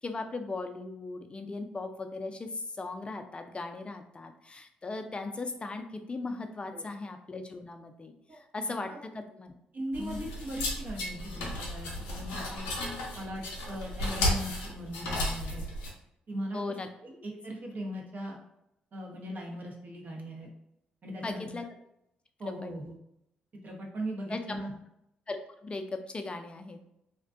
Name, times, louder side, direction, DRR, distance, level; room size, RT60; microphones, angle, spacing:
voice 1, 0.0-9.5 10.0-10.3 16.5-16.9 21.2-21.7 22.5-22.7 24.3-24.7 25.3-26.8, left 3 dB, 30° left, 6 dB, 0.4 m, -38 dB
voice 2, 9.7-12.7 13.1-15.6 16.3-16.6 17.0-18.4 18.9-20.5 21.0-21.5 22.4-23.0 23.6-24.7, equal, 50° right, 0 dB, 0.7 m, -39 dB
sound 1, 9.9-15.9, left 1 dB, 85° left, 0.5 m, -34 dB
2.4 x 2.2 x 2.4 m, 0.80 s
hypercardioid pair, 50°, 4 cm